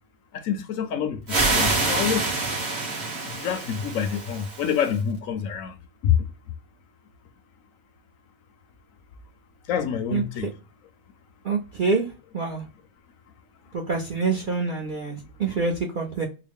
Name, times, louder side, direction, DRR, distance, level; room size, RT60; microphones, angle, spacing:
voice 1, 0.3-2.3 3.4-5.8 6.0-6.1 9.7-10.5, left 8 dB, 70° left, 0.9 m, -26 dB
sound 1, 1.3-4.9, right 3 dB, 35° right, 1.0 m, -26 dB
voice 2, 10.1-10.5 11.4-12.1 12.3-12.6 13.7-16.3, right 4 dB, 55° right, 0.5 m, -26 dB
3.8 x 2.1 x 3.4 m
omnidirectional pair, 1.6 m